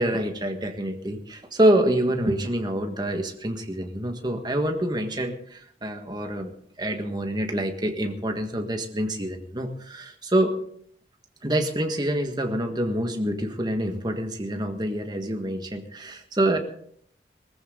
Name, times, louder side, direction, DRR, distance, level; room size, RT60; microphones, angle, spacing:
voice 1, 0.0-6.5 6.8-10.6 11.4-16.6, right 1 dB, 25° right, 5 dB, 1.6 m, -26 dB
19.5 x 14.5 x 3.9 m, 0.64 s
head